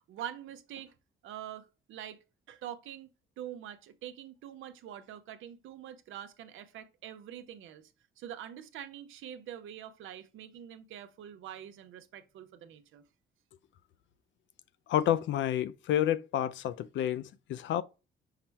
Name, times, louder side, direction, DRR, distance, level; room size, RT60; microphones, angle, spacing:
voice 1, 0.1-0.9 1.2-2.2 2.5-7.9 8.2-13.0, right 10 dB, 80° right, 0.7 m, -45 dB
voice 2, 14.9-17.8, left 11 dB, 70° left, 0.5 m, -29 dB
5.7 x 2.1 x 4.5 m
cardioid pair, 90°, 20 cm